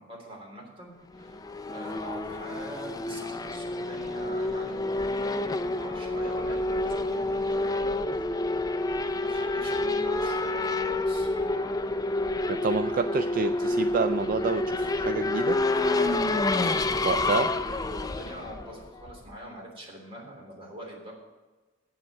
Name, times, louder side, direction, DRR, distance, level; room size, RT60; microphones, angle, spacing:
voice 1, 0.0-7.9 8.2-8.7 9.1-11.3 15.8-21.1, equal, 30° right, -2 dB, 3.4 m, -44 dB
Race car auto racing / Accelerating revving vroom, 1.2-19.3, left 2 dB, 20° left, 0.4 m, -28 dB
voice 2, 12.5-15.6 17.0-17.5, right 4 dB, 45° right, 9 dB, 0.3 m, -28 dB
8.4 x 7.8 x 8.5 m, 1.2 s
head